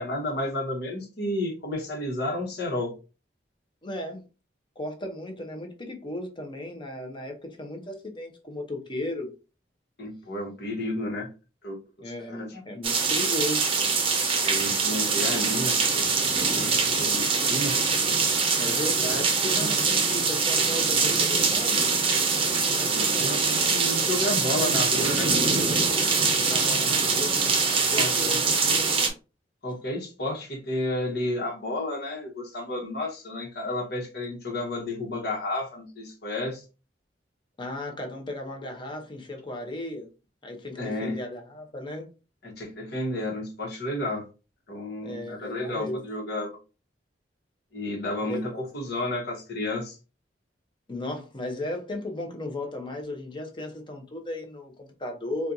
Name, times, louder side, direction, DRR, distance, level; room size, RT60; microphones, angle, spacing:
voice 1, 0.0-2.9 10.0-11.3 11.6-11.8 12.3-12.6 14.4-16.1 16.5-17.8 22.8-25.3 27.9-28.4 29.6-36.6 40.8-41.2 42.4-44.3 44.7-46.5 47.7-50.0, left 1 dB, 65° left, 1.2 m, -31 dB
voice 2, 3.8-4.2 4.8-9.3 12.0-13.7 18.6-21.9 26.4-28.9 37.6-40.1 40.4-42.1 45.0-46.0 48.2-48.6 50.9-55.5, left 1 dB, 25° left, 0.8 m, -35 dB
sound 1, 12.8-29.1, right 4 dB, 30° right, 0.7 m, -23 dB
4.3 x 2.3 x 2.6 m
head